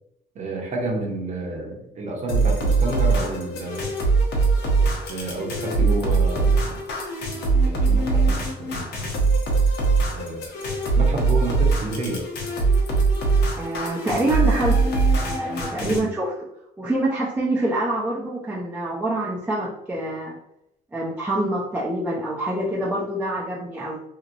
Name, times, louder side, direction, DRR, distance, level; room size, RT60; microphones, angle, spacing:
voice 1, 0.3-3.9 5.1-6.8 7.7-8.9 10.1-10.5 10.9-12.2 15.8-16.0, right 2 dB, 45° right, 0 dB, 0.9 m, -30 dB
sound 1, 2.3-16.0, right 3 dB, 80° left, 1.0 m, -22 dB
voice 2, 13.6-15.0 15.2-16.3 16.8-20.4 20.9-24.0, right 1 dB, 10° right, -7 dB, 0.6 m, -26 dB
3.0 x 2.8 x 2.5 m, 0.80 s
cardioid pair, 110°, 17 cm